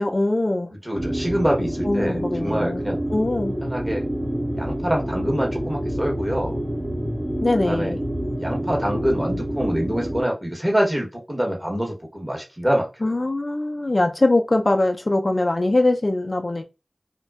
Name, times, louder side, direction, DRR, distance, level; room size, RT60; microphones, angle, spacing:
voice 1, 0.0-0.7 1.9-2.8 3.1-3.6 7.4-8.0 13.0-16.6, left 2 dB, 50° left, 0.3 m, -22 dB
voice 2, 0.8-3.0 3.6-4.0 4.5-6.6 7.6-7.9 8.4-13.1, equal, 20° right, 0.9 m, -25 dB
sound 1, 0.9-10.2, right 1 dB, 85° right, 1.1 m, -27 dB
2.5 x 2.2 x 2.2 m
wide cardioid pair, 55°, 0 cm